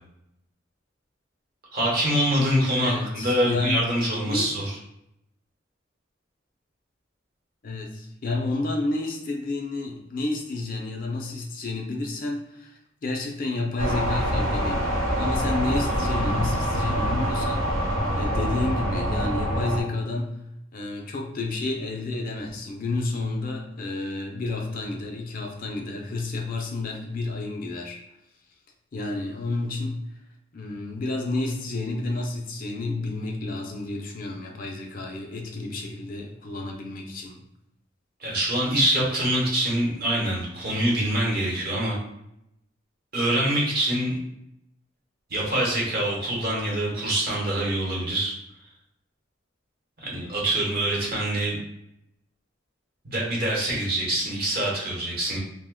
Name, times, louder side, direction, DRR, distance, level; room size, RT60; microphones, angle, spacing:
voice 1, 1.7-4.6 38.2-41.9 43.1-44.2 45.3-48.3 50.0-51.6 53.0-55.4, right 1 dB, 50° right, -4 dB, 1.0 m, -25 dB
voice 2, 2.8-3.9 4.3-4.4 7.6-17.8 18.1-20.4 20.7-28.0 28.9-30.0 30.5-37.4, left 2 dB, 45° left, 2 dB, 0.4 m, -30 dB
sound 1, 13.8-19.8, equal, 80° right, 1.0 m, -25 dB
2.8 x 2.1 x 3.6 m, 0.82 s
head